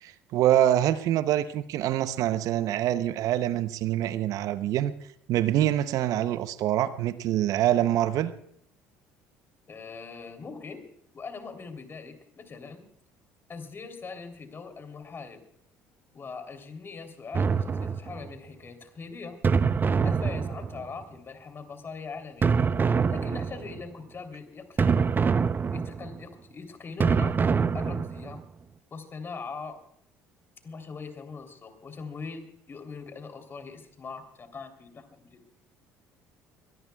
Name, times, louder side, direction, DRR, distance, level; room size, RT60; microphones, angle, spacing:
voice 1, 0.0-4.9 5.3-8.3, right 12 dB, 65° right, 13 dB, 0.8 m, -25 dB
voice 2, 9.7-10.9 11.1-12.8 13.5-15.4 16.1-19.4 20.0-22.6 23.1-25.1 25.7-27.4 27.7-28.4 28.9-29.8 30.6-35.4, left 4 dB, 35° left, 6 dB, 3.2 m, -41 dB
sound 1, 17.3-18.4 19.4-21.0 22.4-23.8 24.8-26.2 27.0-28.4, right 5 dB, 30° right, 0.7 m, -25 dB
23.5 x 18.5 x 2.3 m, 0.69 s
hypercardioid pair, 65°, 7 cm